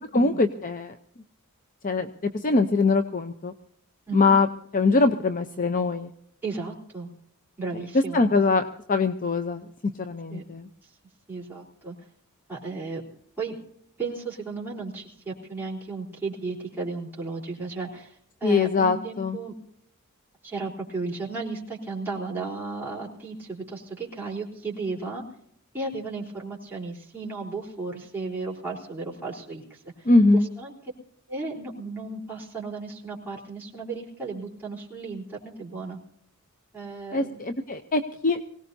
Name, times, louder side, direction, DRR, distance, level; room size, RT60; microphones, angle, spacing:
voice 1, 0.1-0.9 1.8-2.1 2.4-3.5 4.1-4.5 4.7-6.1 8.1-8.6 8.9-9.6 10.0-10.7 18.4-19.4 30.1-30.5 37.1-38.4, left 3 dB, 35° left, 8 dB, 0.7 m, -22 dB
voice 2, 6.4-7.1 7.6-8.2 10.3-10.4 10.8-10.9 11.3-11.9 12.5-13.0 13.4-13.6 14.0-19.5 20.4-25.2 25.7-30.1 30.6-30.7 31.3-36.0 36.7-37.4, right 3 dB, 10° right, -5 dB, 3.9 m, -34 dB
24.0 x 18.0 x 2.7 m, 0.68 s
head